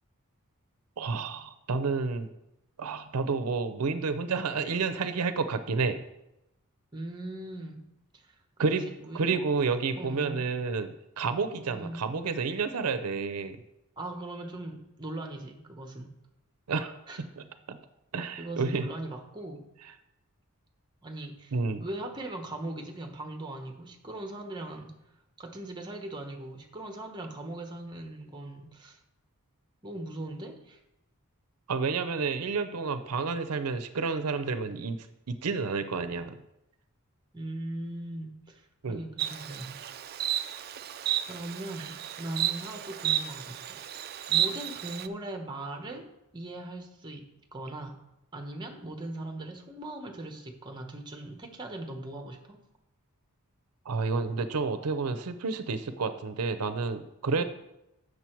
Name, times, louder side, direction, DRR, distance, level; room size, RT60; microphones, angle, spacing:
voice 1, 1.0-2.3 2.8-6.0 8.6-8.9 9.1-13.6 16.7-16.9 17.2-17.8 18.1-18.9 21.5-21.9 31.7-35.0 35.3-36.4 38.8-39.0 53.9-57.4, right 4 dB, 90° right, 10 dB, 0.6 m, -30 dB
voice 2, 6.9-7.8 8.1-8.3 8.9-9.5 9.9-10.5 11.5-12.1 14.0-16.1 17.1-17.2 18.4-19.6 21.0-21.5 21.8-24.9 25.4-29.0 29.8-30.8 37.3-38.6 38.9-39.8 41.3-47.2 47.5-48.0 48.3-52.6 57.4-57.5, right 1 dB, 20° right, 3 dB, 1.0 m, -40 dB
Insect, 39.2-45.1, right 11 dB, 45° right, 0.4 m, -32 dB
8.3 x 6.5 x 4.5 m, 0.87 s
head